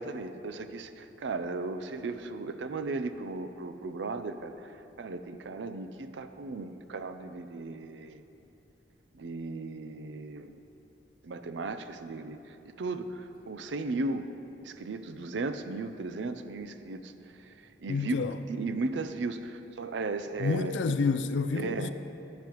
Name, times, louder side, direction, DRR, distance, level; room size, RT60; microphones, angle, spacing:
voice 1, 0.0-4.7 5.0-8.2 9.1-10.6 11.2-14.3 14.6-17.1 17.4-17.5 17.8-18.2 18.5-20.8 21.5-21.9, right 3 dB, 80° right, 0.5 m, -36 dB
voice 2, 17.9-18.4 20.4-21.9, left 4 dB, 80° left, 0.4 m, -29 dB
12.0 x 9.4 x 3.0 m
head